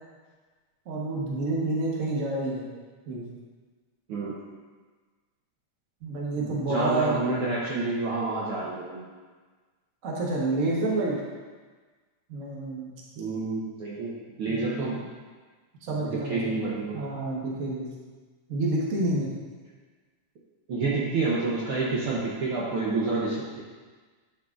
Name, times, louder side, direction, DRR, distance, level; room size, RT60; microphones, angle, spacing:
voice 1, 0.8-2.6 3.1-3.2 6.0-7.2 10.0-11.2 12.3-12.9 14.5-15.0 15.8-16.7 16.9-17.9 18.5-19.3, right 2 dB, 50° right, -4 dB, 0.9 m, -28 dB
voice 2, 6.3-9.0 13.2-14.1 14.4-15.0 16.0-17.1 20.7-23.6, right 3 dB, 65° right, -6 dB, 1.4 m, -29 dB
9.5 x 6.5 x 2.5 m, 1.4 s
omnidirectional pair, 3.4 m